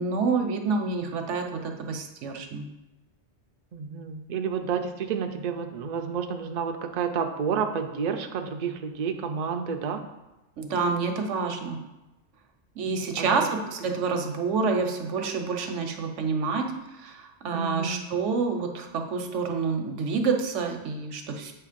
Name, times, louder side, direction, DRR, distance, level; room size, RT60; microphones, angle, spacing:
voice 1, 0.0-2.7 10.6-11.8 12.8-16.7 17.0-21.5, right 4 dB, 80° right, 5 dB, 1.1 m, -28 dB
voice 2, 3.7-10.0 13.2-13.5 17.5-18.0, right 6 dB, 50° right, 6 dB, 0.5 m, -30 dB
7.7 x 3.0 x 5.0 m, 1.0 s
omnidirectional pair, 1.2 m